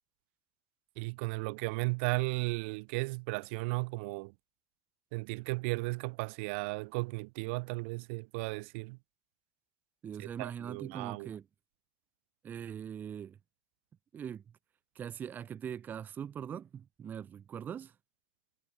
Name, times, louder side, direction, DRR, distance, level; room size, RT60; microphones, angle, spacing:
voice 1, 1.0-4.3 5.1-9.0 10.2-11.3, right 28 dB, 55° right, 0.8 m, -35 dB
voice 2, 10.0-11.4 12.4-13.4 14.1-14.4 15.0-17.9, right 8 dB, 25° right, 0.6 m, -41 dB
hypercardioid pair, 115°, 8 cm